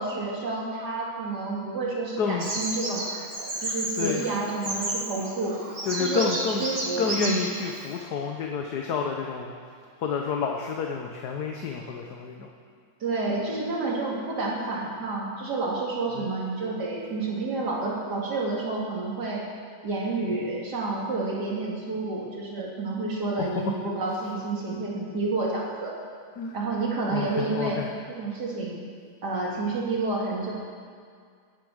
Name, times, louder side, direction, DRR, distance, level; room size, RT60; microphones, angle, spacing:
voice 1, 0.0-3.0 3.6-5.6 6.0-6.3 6.6-7.4 13.0-19.4 19.8-25.9 26.5-27.8 28.1-28.7 29.2-30.5, right 3 dB, 75° right, -4 dB, 3.2 m, -29 dB
voice 2, 2.2-2.5 4.0-4.3 5.8-6.7 7.0-9.5 10.0-12.5 16.1-16.3 23.4-23.5 26.4-26.6 27.1-27.9, left 6 dB, 75° left, 1 dB, 1.5 m, -29 dB
Bird vocalization bird call bird song, 2.4-8.0, right 2 dB, 35° right, 1.8 m, -32 dB
17.5 x 8.5 x 6.4 m, 2.1 s
omnidirectional pair, 1.8 m